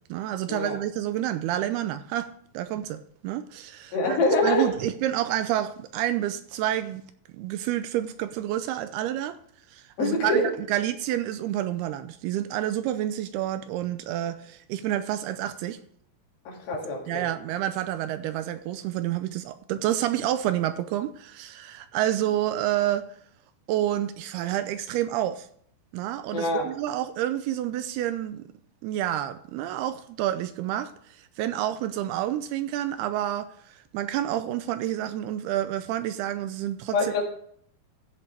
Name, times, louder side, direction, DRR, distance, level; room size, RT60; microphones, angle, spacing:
voice 1, 0.1-7.1 7.3-9.4 9.7-15.8 17.1-23.1 23.7-25.5 25.9-28.5 28.8-30.9 31.2-37.2, right 12 dB, 80° right, 2.5 m, -29 dB
voice 2, 3.9-4.7 10.0-10.5 16.5-17.3 26.3-26.7 36.9-37.2, left 2 dB, 65° left, 4.0 m, -25 dB
15.5 x 7.4 x 3.4 m
omnidirectional pair, 4.8 m